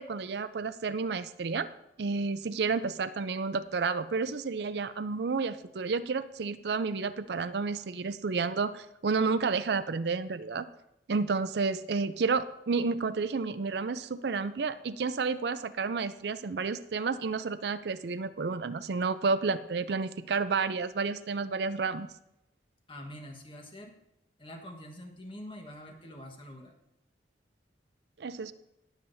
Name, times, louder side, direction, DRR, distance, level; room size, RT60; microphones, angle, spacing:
voice 1, 0.0-1.7 2.0-10.7 11.1-22.1 28.2-28.5, right 4 dB, 65° right, 12 dB, 0.5 m, -31 dB
voice 2, 22.9-24.0 24.4-26.7, left 1 dB, 30° left, 3 dB, 1.3 m, -45 dB
19.5 x 7.3 x 2.7 m, 0.85 s
head